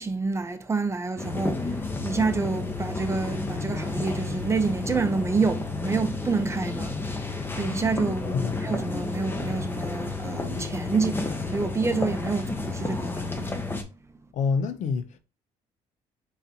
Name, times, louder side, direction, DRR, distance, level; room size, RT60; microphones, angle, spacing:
voice 1, 0.0-1.6 2.0-8.3 8.6-13.7, right 4 dB, 20° right, 0.8 m, -28 dB
sound 1, 1.2-13.8, left 3 dB, 15° left, 0.8 m, -31 dB
voice 2, 8.3-8.6 14.3-15.2, left 5 dB, 70° left, 0.6 m, -27 dB
4.1 x 4.0 x 2.8 m
cardioid pair, 95°, 13 cm